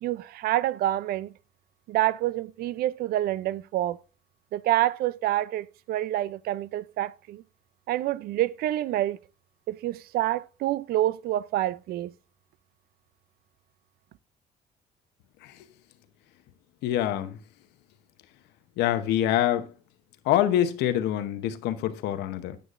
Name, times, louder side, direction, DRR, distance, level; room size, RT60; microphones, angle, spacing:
voice 1, 0.0-1.3 1.9-4.0 4.5-7.4 7.9-9.2 9.7-12.1, right 14 dB, 65° right, 0.4 m, -27 dB
voice 2, 16.8-17.4 18.8-19.7 20.3-22.6, left 12 dB, 85° left, 0.8 m, -25 dB
9.1 x 8.3 x 2.5 m
cardioid pair, 110°, 17 cm